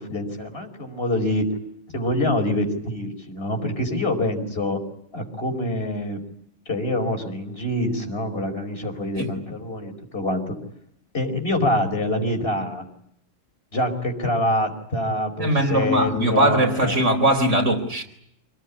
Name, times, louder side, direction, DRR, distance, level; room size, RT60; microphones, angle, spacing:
voice 1, 0.0-1.5 1.9-4.8 5.1-6.2 6.7-10.6 11.1-12.8 13.7-17.0, left 1 dB, 50° left, 5.3 m, -25 dB
voice 2, 15.4-18.0, right 1 dB, 70° right, 4.6 m, -20 dB
28.0 x 18.5 x 9.9 m
omnidirectional pair, 1.3 m